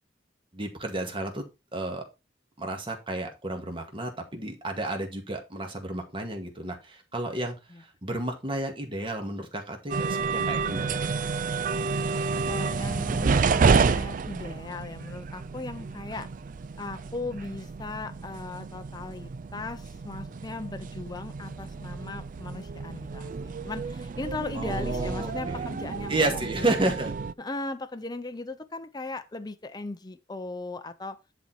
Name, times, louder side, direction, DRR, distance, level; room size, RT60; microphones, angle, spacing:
voice 1, 0.5-1.4 1.7-2.0 2.6-11.0 24.6-25.7 26.1-27.1, right 2 dB, 30° right, 1.9 m, -31 dB
sound 1, 9.9-27.3, right 5 dB, 45° right, 0.4 m, -30 dB
voice 2, 12.3-16.3 16.8-26.4 26.8-26.9 27.4-31.2, left 2 dB, 25° left, 0.6 m, -38 dB
10.5 x 4.4 x 4.4 m
head